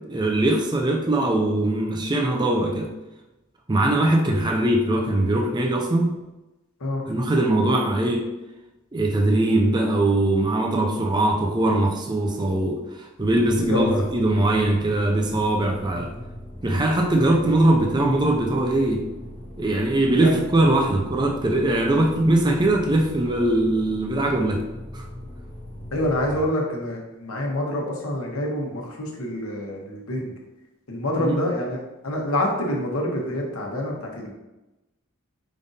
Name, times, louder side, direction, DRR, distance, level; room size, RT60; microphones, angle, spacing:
voice 1, 0.1-2.9 3.7-6.2 7.1-8.2 8.9-16.1 16.6-19.0 19.6-24.6 24.9-25.1 31.2-31.4, right 1 dB, 20° right, 1 dB, 0.5 m, -21 dB
sound 1, 13.2-26.4, left 1 dB, 35° left, 1.2 m, -39 dB
voice 2, 13.7-14.0 20.0-20.3 25.9-30.3 30.9-34.3, left 1 dB, 85° left, -1 dB, 1.0 m, -27 dB
5.2 x 2.6 x 4.0 m, 1.0 s
head